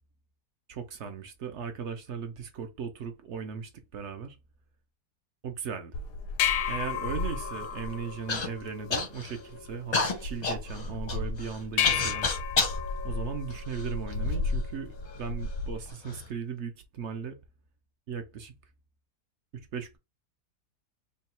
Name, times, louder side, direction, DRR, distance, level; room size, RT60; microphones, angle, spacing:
voice 1, 0.7-4.4 5.4-6.0 6.7-12.3 13.0-17.4 18.1-18.5 19.5-20.0, right 6 dB, 65° right, 0.7 m, -37 dB
sound 1, 5.9-15.9, left 6 dB, 85° left, 1.2 m, -33 dB
Human voice / Cough, 8.3-8.5 8.9-9.4 9.9-12.8 13.5-14.3 15.1-15.2 15.9-16.2, left 4 dB, 45° left, 0.5 m, -30 dB
3.7 x 2.2 x 4.2 m
omnidirectional pair, 1.7 m